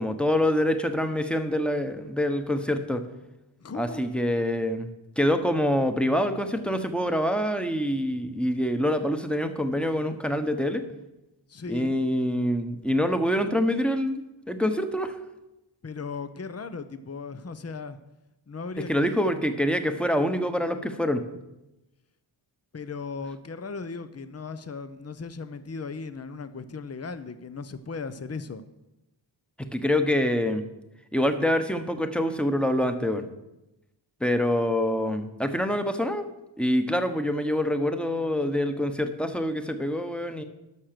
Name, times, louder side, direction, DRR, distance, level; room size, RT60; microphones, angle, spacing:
voice 1, 0.0-3.1 3.7-4.9 5.2-10.8 11.7-15.2 18.9-21.2 29.6-30.6 31.1-33.3 34.2-36.3 36.6-40.4, equal, ahead, 8 dB, 1.1 m, -25 dB
voice 2, 3.6-4.0 11.5-12.0 15.8-18.0 18.5-19.2 22.7-28.6, left 4 dB, 30° left, 12 dB, 0.7 m, -37 dB
12.0 x 6.4 x 6.8 m, 0.94 s
wide cardioid pair, 60°, 47 cm